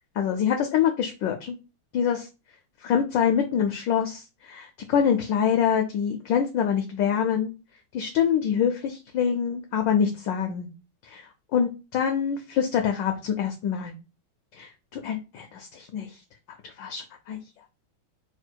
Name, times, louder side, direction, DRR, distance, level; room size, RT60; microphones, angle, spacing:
voice 1, 0.2-1.6 1.9-2.2 2.8-7.5 7.9-10.7 11.0-13.9 14.5-16.2 16.6-17.4, left 8 dB, 75° left, 5 dB, 1.0 m, -25 dB
4.3 x 2.2 x 4.4 m, 0.30 s
omnidirectional pair, 2.4 m